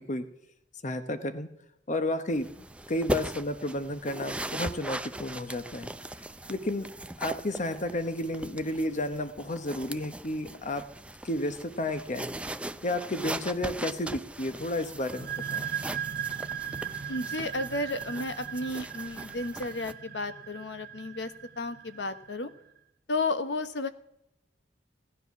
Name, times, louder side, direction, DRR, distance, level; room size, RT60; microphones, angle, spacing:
voice 1, 0.8-1.5 1.9-5.9 6.5-6.9 7.2-10.8 11.2-12.4 12.8-15.7, left 1 dB, 45° left, 10 dB, 1.0 m, -32 dB
sound 1, 2.3-19.9, right 1 dB, 5° right, 0.5 m, -40 dB
sound 2, 15.1-22.5, right 8 dB, 60° right, 0.6 m, -38 dB
voice 2, 17.1-22.5 23.1-23.9, left 2 dB, 70° left, 10 dB, 1.1 m, -33 dB
17.0 x 9.9 x 6.0 m, 0.81 s
head